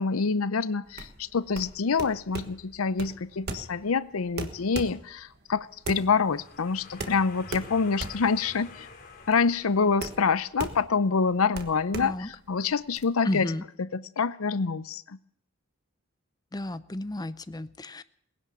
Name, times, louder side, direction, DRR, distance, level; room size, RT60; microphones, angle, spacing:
voice 1, 0.0-8.9 9.3-13.5 13.9-15.2, left 5 dB, 85° left, 16 dB, 0.6 m, -26 dB
sound 1, 0.9-13.0, right 2 dB, 50° right, 1.4 m, -39 dB
sound 2, 5.8-10.5, left 4 dB, 45° left, 5.0 m, -48 dB
voice 2, 13.2-13.7 16.5-18.0, left 1 dB, 20° left, 13 dB, 0.6 m, -32 dB
19.0 x 11.0 x 7.0 m, 0.69 s
head